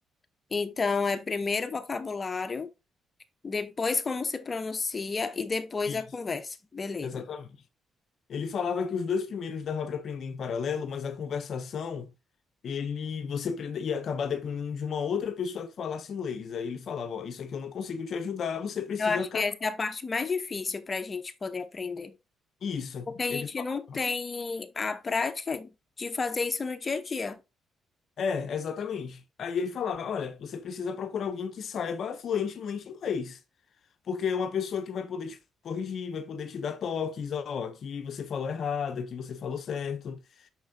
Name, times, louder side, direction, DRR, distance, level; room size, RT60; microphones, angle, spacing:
voice 1, 0.5-2.7 3.4-7.2 19.0-22.1 23.2-25.7 26.0-27.4, left 4 dB, 30° left, 0.8 m, -31 dB
voice 2, 7.0-7.5 8.3-12.1 12.6-19.4 22.6-23.5 23.9-24.0 28.2-33.4 34.1-35.4 35.6-40.5, left 6 dB, 60° left, 0.6 m, -33 dB
7.1 x 5.8 x 2.7 m
cardioid pair, 90°, 0 cm